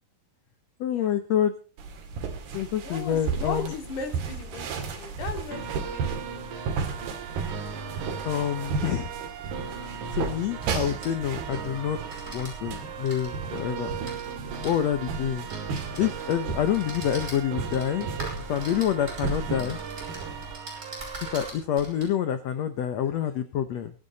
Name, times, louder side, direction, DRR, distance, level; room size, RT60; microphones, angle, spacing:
voice 1, 0.8-1.5 2.5-3.7 8.2-9.1 10.1-12.0 12.3-14.0 14.6-15.5 16.0-18.1 18.4-19.8 21.3-23.9, left 9 dB, 85° left, 10 dB, 1.5 m, -27 dB
sound 1, 1.8-20.5, right 5 dB, 80° right, 4.2 m, -35 dB
voice 2, 2.8-6.4, left 4 dB, 55° left, 5 dB, 3.7 m, -37 dB
sound 2, 5.5-21.5, right 7 dB, 60° right, 2.8 m, -38 dB
sound 3, 10.6-11.7 12.0-12.5 12.9-14.8 15.4-16.4 16.7-22.0, right 1 dB, 20° right, 6.2 m, -42 dB
22.5 x 10.5 x 4.1 m, 0.35 s
omnidirectional pair, 4.4 m